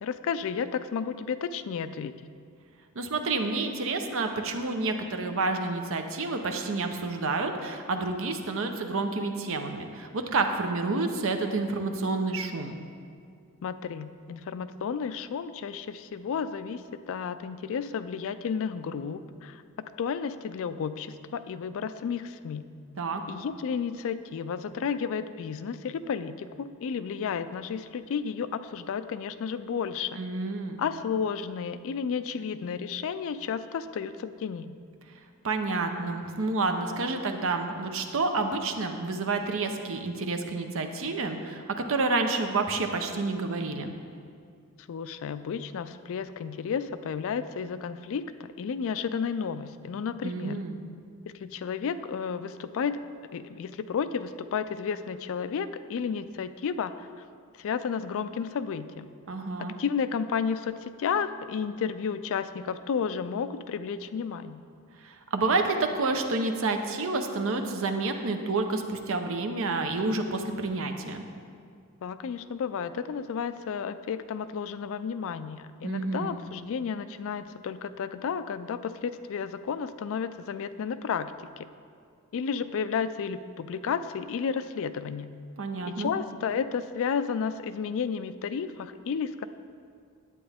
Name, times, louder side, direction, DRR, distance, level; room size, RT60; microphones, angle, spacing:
voice 1, 0.0-2.1 13.6-16.8 17.1-19.6 20.0-22.7 23.3-30.2 30.8-34.7 44.9-50.6 51.3-53.0 53.3-57.1 57.6-59.1 59.6-64.6 72.0-81.7 82.3-85.3 85.8-89.4, left 6 dB, 60° left, 12 dB, 0.3 m, -32 dB
voice 2, 2.9-12.8 23.0-23.2 30.2-30.8 35.4-43.9 50.2-50.8 59.3-59.7 65.0-71.2 75.8-76.3 85.6-86.1, right 3 dB, 60° right, 6 dB, 0.7 m, -29 dB
10.0 x 8.5 x 3.5 m, 2.2 s
head